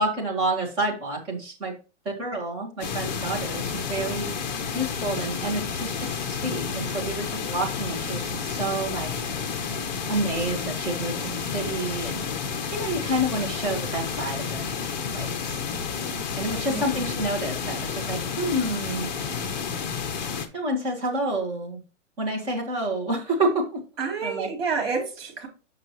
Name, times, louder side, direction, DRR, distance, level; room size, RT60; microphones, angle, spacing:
voice 1, 0.0-1.7 2.0-9.7 10.1-12.3 12.7-14.7 15.1-15.6 16.4-19.1 20.5-21.8 22.2-23.8 24.2-24.5, right 1 dB, 15° right, -2 dB, 1.7 m, -29 dB
sound 1, 2.8-20.5, left 6 dB, 35° left, 0.9 m, -31 dB
voice 2, 16.6-17.0 20.3-20.5 24.0-25.5, right 4 dB, 50° right, 1 dB, 3.9 m, -29 dB
7.5 x 6.0 x 3.0 m, 0.34 s
hypercardioid pair, 165°, 37 cm